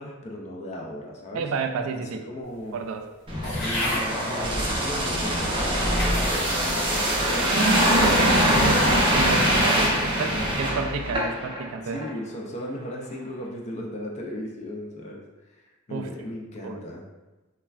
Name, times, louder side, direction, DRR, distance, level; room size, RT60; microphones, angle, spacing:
voice 1, 0.0-1.4 2.3-2.8 3.6-6.3 6.9-7.9 10.1-10.8 11.9-15.2 15.9-17.0, left 1 dB, 35° left, -1 dB, 0.4 m, -36 dB
voice 2, 1.3-2.2 2.7-3.1 7.5-12.0 15.9-16.3 16.6-16.8, right 4 dB, 80° right, 6 dB, 0.3 m, -30 dB
sound 1, 3.3-11.6 11.9-12.1, equal, 25° right, 0.5 m, -23 dB
sound 2, 3.4-4.1 4.9-5.0 5.6-6.5 7.0-7.4, left 1 dB, 75° left, 1.0 m, -31 dB
3.1 x 2.2 x 2.3 m, 1.1 s
head